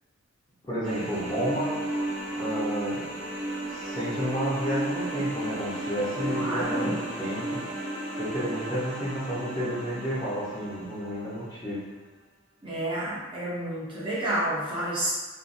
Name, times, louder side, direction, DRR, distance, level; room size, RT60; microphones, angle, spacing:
voice 1, 0.6-1.7 2.4-3.0 3.7-7.6 8.2-11.8, equal, 20° left, -9 dB, 0.7 m, -31 dB
sound 1, 0.8-11.6, right 1 dB, 90° right, 0.6 m, -33 dB
voice 2, 6.3-6.9 12.6-15.1, right 1 dB, 25° right, -8 dB, 0.6 m, -30 dB
2.6 x 2.4 x 2.5 m, 1.3 s
head